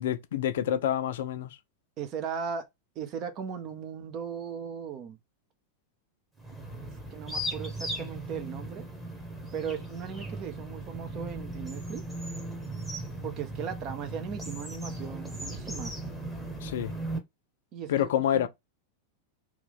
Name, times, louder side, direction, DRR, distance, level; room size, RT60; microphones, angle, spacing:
voice 1, 0.0-1.6 16.6-16.9 17.9-18.5, left 10 dB, 55° left, 0.4 m, -28 dB
voice 2, 2.0-2.7 3.0-5.2 7.1-8.9 9.5-12.0 13.2-15.9 17.7-18.5, right 7 dB, 35° right, 0.6 m, -37 dB
sound 1, 6.4-17.2, right 1 dB, 5° right, 1.0 m, -37 dB
3.0 x 2.5 x 3.5 m
figure-of-eight pair, 90°, 0 cm